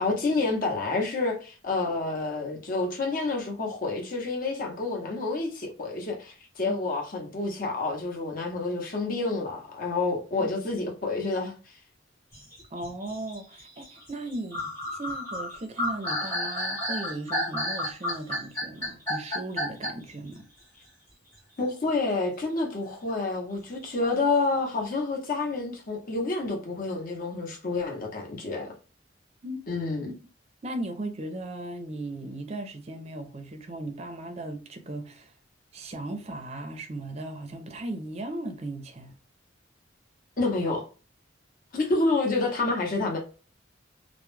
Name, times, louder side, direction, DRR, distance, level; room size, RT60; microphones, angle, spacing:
voice 1, 0.0-11.5 21.6-28.7 29.7-30.1 40.4-40.8 41.7-43.2, left 3 dB, 45° left, 0.7 m, -28 dB
sound 1, 12.3-20.1, left 1 dB, 15° left, 0.9 m, -31 dB
voice 2, 12.7-20.4 29.4-29.7 30.0-30.1 30.6-35.3 35.7-39.2, right 2 dB, 35° right, 0.5 m, -37 dB
2.2 x 2.1 x 3.1 m
head